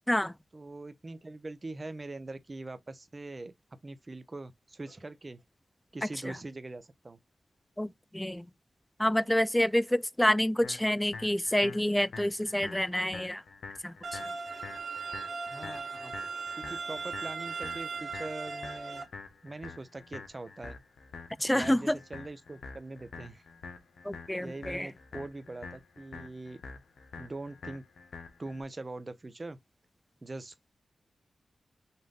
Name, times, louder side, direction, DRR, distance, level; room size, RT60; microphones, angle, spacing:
voice 1, 0.5-5.4 5.9-7.2 15.5-16.1 16.5-19.1 19.4-20.8 21.5-23.4 24.3-26.6 27.2-27.8 28.4-29.6 30.2-30.7, right 2 dB, 35° right, 0.8 m, -42 dB
voice 2, 7.8-8.5 9.0-13.4 13.8-14.2 21.4-22.0 24.0-24.9, left 1 dB, 10° left, 0.3 m, -28 dB
sound 1, 10.6-28.6, left 4 dB, 85° left, 1.0 m, -47 dB
sound 2, 14.0-19.0, right 4 dB, 65° right, 1.4 m, -38 dB
5.6 x 2.6 x 3.7 m
cardioid pair, 55°, 0 cm